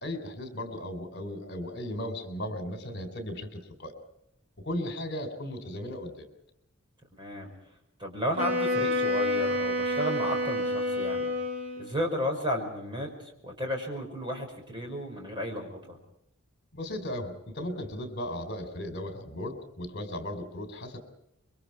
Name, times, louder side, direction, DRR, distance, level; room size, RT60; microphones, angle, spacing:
voice 1, 0.0-3.9 4.6-6.3 16.7-21.0, left 1 dB, 50° left, 7 dB, 3.9 m, -36 dB
voice 2, 7.2-7.5 8.0-11.3 11.8-16.0, equal, 25° right, 2 dB, 5.5 m, -33 dB
Wind instrument woodwind instrument, 8.4-11.9, left 1 dB, 65° right, 6.8 m, -28 dB
26.5 x 23.5 x 4.7 m, 0.78 s
head